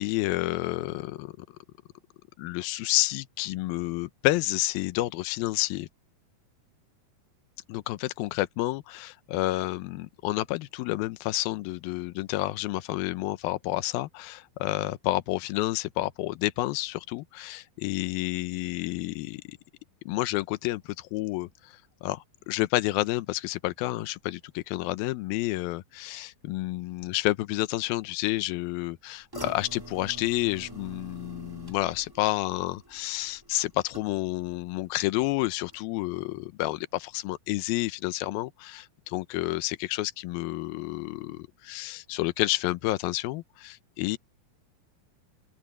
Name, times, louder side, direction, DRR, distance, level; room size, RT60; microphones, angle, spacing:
voice 1, 0.0-1.5 2.4-5.9 7.7-19.6 20.1-44.2, left 18 dB, 80° left, 2.6 m, -30 dB
sound 1, 29.3-34.5 34.8-35.3 35.7-35.8, right 2 dB, 20° right, 0.6 m, -45 dB
open air
omnidirectional pair, 4.3 m